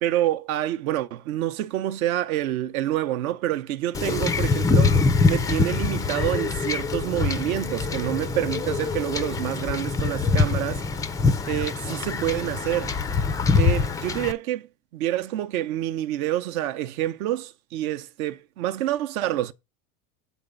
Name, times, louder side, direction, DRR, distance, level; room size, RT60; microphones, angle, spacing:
voice 1, 0.0-5.0 5.2-10.8 11.5-12.9 13.6-19.5, right 13 dB, 70° right, 0.8 m, -27 dB
Wind / Ocean / Boat Water vehicle, 3.9-14.3, left 4 dB, 10° left, 0.3 m, -24 dB
8.0 x 3.6 x 5.2 m
hypercardioid pair, 100°, 44 cm